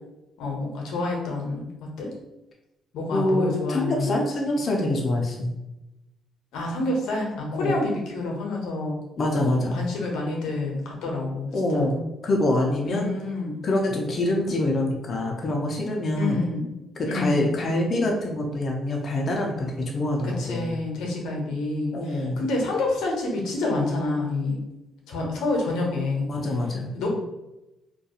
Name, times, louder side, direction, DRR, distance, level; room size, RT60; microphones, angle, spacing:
voice 1, 0.4-1.7 2.0-2.1 2.9-4.2 6.5-9.0 9.7-11.9 12.8-13.6 16.1-16.7 17.0-17.6 20.2-24.6 25.1-26.3 26.9-27.1, left 2 dB, 90° left, -1 dB, 0.7 m, -28 dB
voice 2, 3.1-5.5 7.5-7.8 9.2-9.8 11.5-13.1 13.6-16.4 17.0-20.7 21.9-22.5 26.3-26.9, left 1 dB, 45° left, 0 dB, 0.5 m, -25 dB
2.4 x 2.2 x 2.7 m, 0.96 s
cardioid pair, 90°, 0 cm